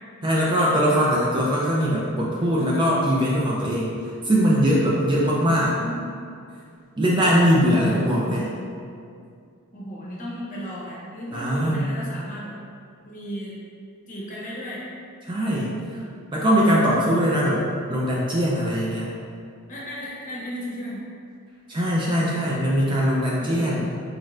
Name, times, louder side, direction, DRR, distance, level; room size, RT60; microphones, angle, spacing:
voice 1, 0.2-3.9 4.2-5.7 7.0-8.5 11.3-11.9 15.3-16.0 16.3-17.6 17.9-19.1 21.7-23.9, equal, 20° right, -5 dB, 0.4 m, -21 dB
voice 2, 5.4-6.1 7.6-8.1 9.7-12.5 13.0-13.6 14.1-14.8 19.7-21.0 23.4-23.9, equal, 35° left, -6 dB, 0.8 m, -35 dB
4.1 x 2.4 x 3.2 m, 2.3 s
head